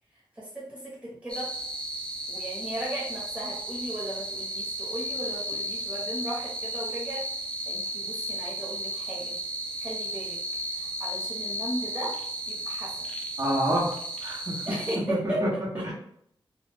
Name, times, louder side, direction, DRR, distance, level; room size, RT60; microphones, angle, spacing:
voice 1, 0.3-1.5 2.3-7.3 7.7-9.4 9.8-10.4 10.7-12.1 12.5-12.9 14.6-15.8, right 1 dB, 15° right, -7 dB, 1.0 m, -36 dB
sound 1, 1.3-15.0, right 1 dB, 10° left, 0.5 m, -34 dB
voice 2, 13.4-13.9 14.2-14.6 15.1-15.5 15.8-15.9, right 1 dB, 45° right, -5 dB, 1.0 m, -27 dB
2.5 x 2.3 x 3.3 m, 0.69 s
wide cardioid pair, 100°, 9 cm